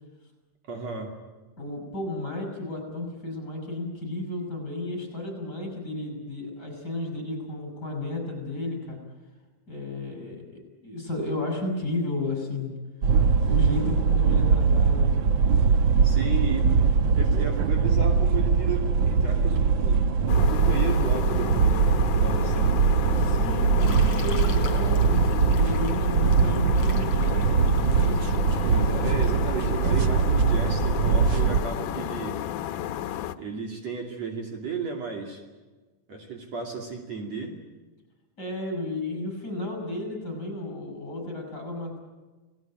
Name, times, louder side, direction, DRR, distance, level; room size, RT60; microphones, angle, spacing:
voice 1, 0.7-1.1 16.0-16.7 17.1-22.8 28.6-32.4 33.4-35.4 36.1-37.5, right 5 dB, 55° right, 2 dB, 3.8 m, -34 dB
voice 2, 1.6-9.0 9.7-10.5 10.8-12.7 13.4-15.1 23.2-28.3 28.9-29.5 38.4-42.0, left 2 dB, 30° left, 3 dB, 7.7 m, -33 dB
sound 1, 13.0-31.6, right 5 dB, 80° right, 1.1 m, -22 dB
sound 2, 20.3-33.4, left 11 dB, 75° left, 2.4 m, -32 dB
Bathtub (filling or washing), 23.8-29.4, left 4 dB, 45° left, 5.1 m, -43 dB
29.0 x 19.5 x 9.1 m, 1.3 s
omnidirectional pair, 3.8 m